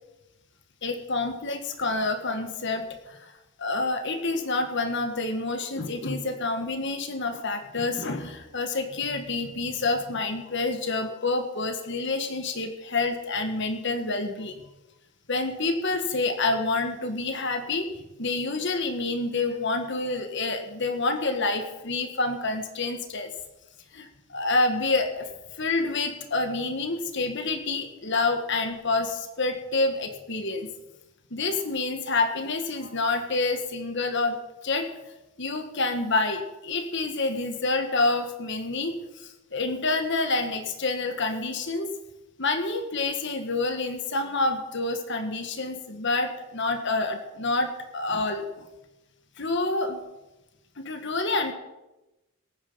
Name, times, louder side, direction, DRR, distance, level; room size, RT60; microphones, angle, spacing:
voice 1, 0.8-3.3 3.6-14.6 15.3-17.9 18.2-23.3 23.9-25.3 25.6-30.7 31.3-34.9 35.4-41.9 42.4-48.7 49.4-50.0 50.8-51.5, left 3 dB, 55° left, 7 dB, 1.6 m, -28 dB
18.0 x 9.1 x 5.5 m, 1.0 s
head